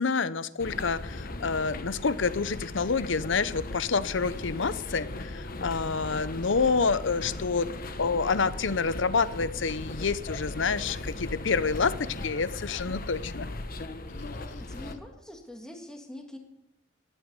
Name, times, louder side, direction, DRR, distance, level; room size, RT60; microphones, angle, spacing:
voice 1, 0.0-7.7 8.0-13.5, left 4 dB, 65° left, 16 dB, 0.7 m, -28 dB
sound 1, 0.6-14.9, left 2 dB, 45° left, 1.0 m, -38 dB
voice 2, 14.4-16.4, left 1 dB, 5° left, 2 dB, 1.7 m, -44 dB
15.5 x 11.5 x 5.3 m, 0.80 s
head